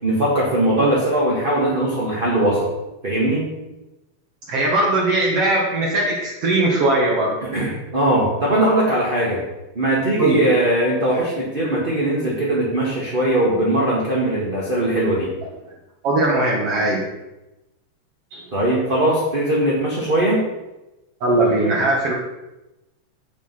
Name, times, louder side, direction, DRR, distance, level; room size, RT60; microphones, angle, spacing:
voice 1, 0.0-2.7 3.0-3.5 7.4-9.4 9.7-15.3 18.5-20.4, right 1 dB, 25° right, -5 dB, 1.3 m, -20 dB
voice 2, 4.5-7.4 10.2-10.4 16.0-17.1 18.3-18.4 21.2-22.1, right 2 dB, 60° right, -3 dB, 2.2 m, -19 dB
7.4 x 7.2 x 5.8 m, 1.0 s
omnidirectional pair, 3.4 m